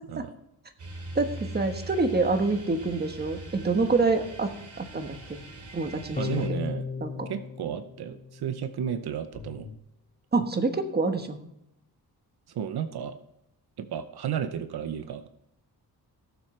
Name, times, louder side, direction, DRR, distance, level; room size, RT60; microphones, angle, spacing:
sound 1, 0.8-6.5, right 1 dB, 50° right, 2.9 m, -42 dB
voice 1, 1.1-5.4 5.7-6.5 7.0-7.3 10.3-11.4, right 3 dB, 25° right, 6 dB, 1.2 m, -27 dB
sound 2, 6.2-8.8, left 5 dB, 20° left, 0.6 m, -35 dB
voice 2, 6.2-6.9 7.3-9.7 12.5-13.2 13.8-15.3, right 8 dB, 75° right, 10 dB, 0.8 m, -33 dB
sound 3, 9.3-9.8, left 6 dB, 45° left, 0.9 m, -44 dB
18.5 x 7.4 x 3.3 m, 0.80 s
wide cardioid pair, 115°, 38 cm